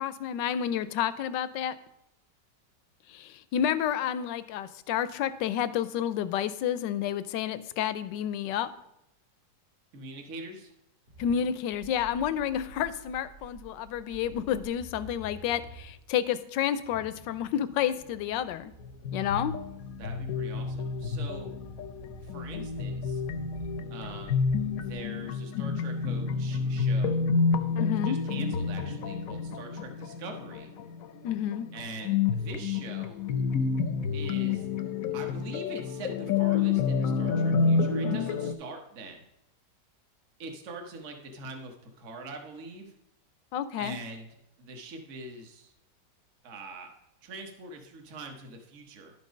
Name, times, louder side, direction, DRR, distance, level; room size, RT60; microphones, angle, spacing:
voice 1, 0.0-1.8 3.1-8.7 11.2-18.7 19.1-19.5 27.8-28.2 31.2-31.7 43.5-44.0, left 9 dB, 80° left, 14 dB, 1.3 m, -30 dB
voice 2, 9.9-10.7 20.0-21.5 22.2-23.2 23.9-24.5 24.8-27.2 27.8-30.7 31.7-33.2 34.1-34.7 35.1-39.2 40.4-42.9 43.8-44.3 44.6-45.7 46.4-46.9 47.2-49.1, right 2 dB, 45° right, 3 dB, 1.4 m, -43 dB
sound 1, 11.1-24.9, right 2 dB, 65° right, 2.5 m, -49 dB
sound 2, 18.8-38.5, left 5 dB, 65° left, 0.9 m, -29 dB
11.5 x 5.4 x 5.1 m, 0.82 s
omnidirectional pair, 1.9 m